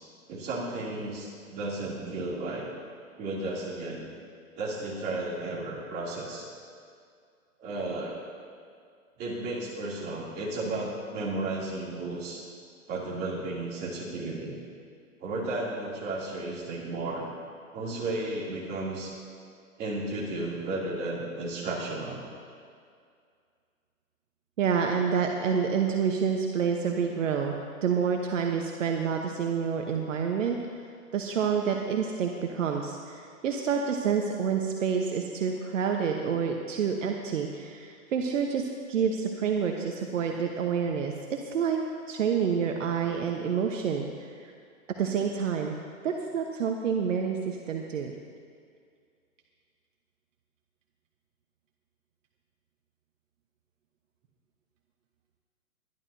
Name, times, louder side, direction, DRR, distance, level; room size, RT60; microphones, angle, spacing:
voice 1, 0.3-2.6 3.2-4.1 4.6-6.5 7.6-8.2 9.2-12.4 12.9-14.6 15.2-17.3 17.7-19.1 19.8-22.2, right 2 dB, 25° right, -5 dB, 2.9 m, -33 dB
voice 2, 24.6-27.6 27.8-30.6 31.1-41.8 42.1-44.5 45.0-45.8 46.0-48.1, right 6 dB, 60° right, 2 dB, 1.1 m, -28 dB
21.5 x 11.5 x 2.8 m, 2.2 s
hypercardioid pair, 145°, 42 cm